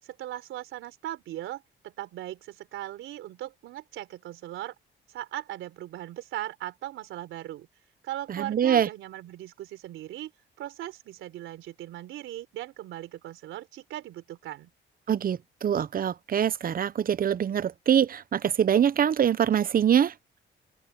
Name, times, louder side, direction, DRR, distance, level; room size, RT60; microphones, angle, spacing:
voice 1, 0.0-4.8 5.1-7.7 8.0-10.3 10.6-14.7, right 14 dB, 85° right, 3.9 m, -38 dB
voice 2, 8.3-8.9 15.1-20.1, right 9 dB, 45° right, 0.8 m, -24 dB
open air
cardioid pair, 90°, 20 cm